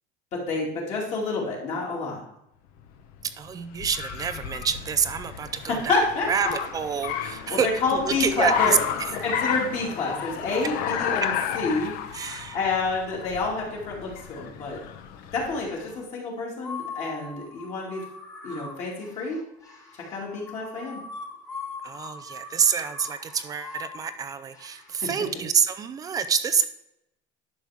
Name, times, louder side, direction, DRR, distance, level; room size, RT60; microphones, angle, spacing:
voice 1, 0.3-2.2 5.9-6.5 7.2-8.7 9.2-14.8 15.3-18.0 18.4-19.4 20.1-21.0 25.0-25.1, left 3 dB, 40° left, -3 dB, 2.5 m, -28 dB
Car, 2.8-15.7, left 8 dB, 55° left, 0.9 m, -32 dB
voice 2, 3.4-6.0 6.3-9.1 12.1-12.6 21.8-26.7, right 7 dB, 20° right, 11 dB, 0.5 m, -27 dB
sound 1, 15.4-16.0 16.6-25.2, left 4 dB, 15° left, 1.6 m, -41 dB
11.0 x 6.2 x 3.5 m, 0.84 s
cardioid pair, 170°, 18 cm